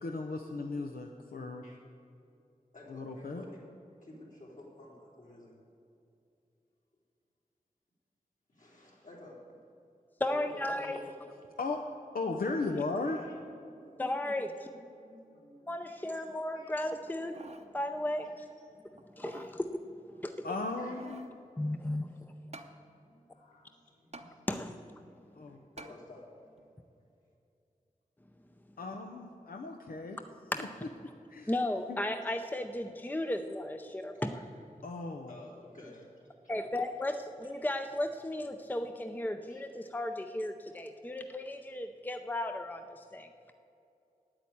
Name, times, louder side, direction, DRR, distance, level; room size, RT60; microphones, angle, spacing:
voice 1, 0.0-1.6 2.9-3.4 11.6-11.8 12.1-13.2 20.4-21.3 25.3-25.6 28.8-30.2 30.6-30.7 31.3-31.5 31.9-32.0 34.8-35.3, left 3 dB, 90° left, 3 dB, 0.7 m, -36 dB
voice 2, 2.7-3.6 4.0-5.6 8.5-9.5 10.3-11.3 12.4-12.8 13.0-14.2 14.6-16.2 16.5-16.7 18.2-18.3 18.6-19.0 19.4-19.5 20.8-21.2 21.6-24.5 25.5-26.7 27.0-27.1 32.3-32.5 34.1-34.5 35.3-36.1 36.4-36.5 37.4-37.5 39.5-39.6, left 1 dB, 65° left, -4 dB, 3.5 m, -53 dB
voice 3, 10.2-11.0 14.0-14.7 15.7-17.4 17.7-18.3 19.2-19.8 20.1-20.5 21.6-22.1 24.5-24.8 30.5-30.6 31.5-34.4 36.5-43.3, left 1 dB, 10° left, 7 dB, 0.5 m, -35 dB
sound 1, 17.1-17.7 18.2-18.3 19.0-19.6 20.6-21.3 22.5-22.8 24.1-24.3 25.8-26.0 26.6-26.7, right 2 dB, 50° right, 0.8 m, -49 dB
9.4 x 8.8 x 8.5 m, 2.7 s
wide cardioid pair, 75°, 15 cm